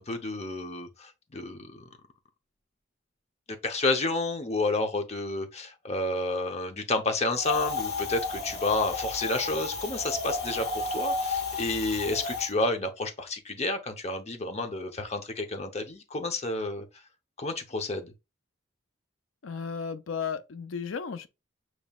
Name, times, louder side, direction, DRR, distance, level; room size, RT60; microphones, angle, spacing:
voice 1, 0.0-1.8 3.5-16.8 17.4-18.1, left 2 dB, 35° left, 0.8 m, -30 dB
Wind, 7.4-12.5, left 3 dB, 60° left, 1.5 m, -32 dB
voice 2, 19.4-21.3, left 6 dB, 80° left, 0.5 m, -34 dB
7.1 x 3.1 x 2.4 m
head